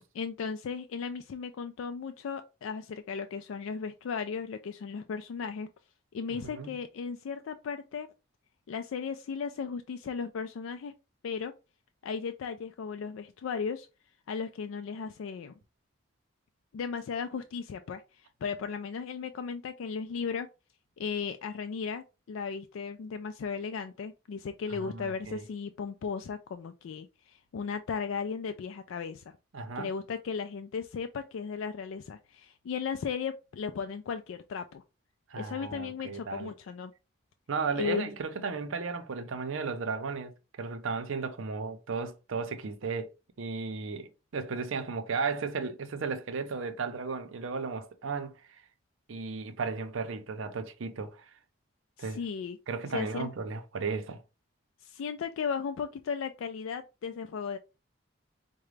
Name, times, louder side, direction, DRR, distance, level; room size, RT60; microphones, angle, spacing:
voice 1, 0.1-5.7 6.1-8.1 8.7-10.9 11.2-11.5 12.0-13.9 14.3-15.5 16.7-20.5 21.0-29.2 29.8-34.8 35.4-36.9 37.7-38.1 52.0-52.6 52.9-53.3 54.8-57.6, left 6 dB, 80° left, 0.3 m, -36 dB
voice 2, 6.3-6.8 24.7-25.4 29.5-29.9 35.3-36.5 37.5-43.1 43.4-48.4 49.1-51.3 52.0-52.2 52.7-54.2, right 4 dB, 80° right, 0.6 m, -35 dB
4.8 x 2.2 x 3.2 m
head